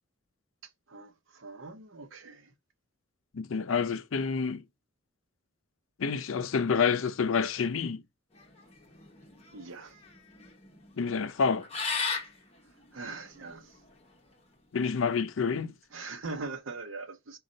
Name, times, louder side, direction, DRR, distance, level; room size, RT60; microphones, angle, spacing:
voice 1, 0.9-2.5 9.5-10.0 12.9-13.8 15.9-17.4, right 3 dB, 75° right, 0.7 m, -41 dB
voice 2, 3.3-4.6 6.0-8.0 11.0-11.6 14.7-15.7, left 5 dB, 80° left, 0.5 m, -28 dB
sound 1, 8.3-14.1, left 4 dB, 30° left, 0.9 m, -37 dB
5.2 x 2.3 x 3.7 m
head